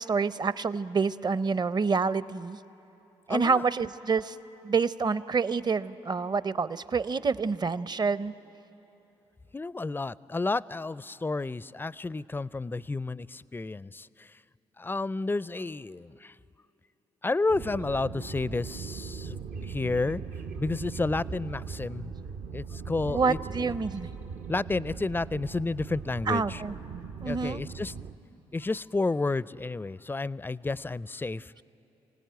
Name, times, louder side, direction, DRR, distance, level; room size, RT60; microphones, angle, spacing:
voice 1, 0.0-2.6 3.3-4.4 4.6-8.3 23.1-24.1 26.3-26.8 27.2-27.6, right 5 dB, 35° right, 16 dB, 0.7 m, -27 dB
voice 2, 3.3-3.6 9.5-14.3 14.8-16.3 17.2-20.2 20.6-22.1 22.5-23.7 24.5-26.6 27.2-27.9 28.5-31.5, left 3 dB, 15° left, 20 dB, 0.4 m, -31 dB
sound 1, 17.5-28.1, right 5 dB, 70° right, 1.0 m, -39 dB
25.5 x 17.0 x 9.3 m, 3.0 s
hypercardioid pair, 50°, 13 cm